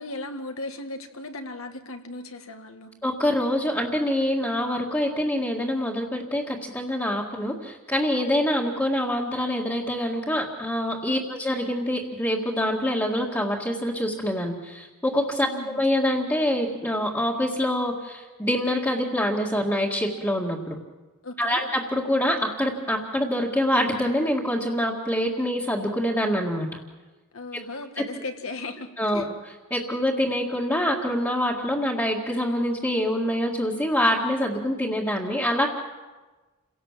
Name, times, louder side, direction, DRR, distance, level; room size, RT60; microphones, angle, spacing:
voice 1, 0.0-2.9 11.1-11.3 15.5-15.8 21.2-21.6 27.3-29.3, left 2 dB, 65° left, 5 dB, 2.0 m, -37 dB
voice 2, 3.0-20.8 21.4-26.7 28.0-28.1 29.0-35.7, equal, 10° left, -6 dB, 2.0 m, -25 dB
28.5 x 17.5 x 7.6 m, 1.2 s
head